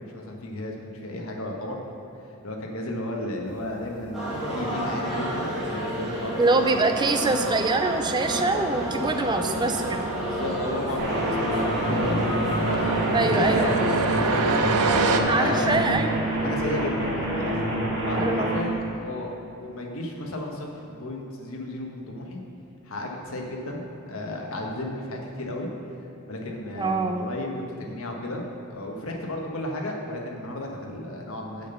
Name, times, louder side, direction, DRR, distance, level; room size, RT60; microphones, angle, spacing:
voice 1, 0.1-1.8 2.1-6.4 7.2-7.5 10.2-12.2 12.5-14.5 15.0-15.9 16.4-17.6 18.0-22.4 22.8-25.7 26.3-28.4 28.7-31.7, left 1 dB, 65° left, 0 dB, 1.3 m, -33 dB
sound 1, 3.5-15.2, right 4 dB, 85° right, 0.6 m, -31 dB
sound 2, 4.1-15.8, right 1 dB, ahead, 2.1 m, -30 dB
voice 2, 6.4-10.0 13.1-13.7 15.3-16.2 18.2-18.6 26.8-27.4, right 3 dB, 20° right, 6 dB, 0.5 m, -24 dB
sound 3, 11.0-18.6, right 1 dB, 55° right, 2.1 m, -27 dB
7.2 x 5.9 x 6.9 m, 2.9 s
head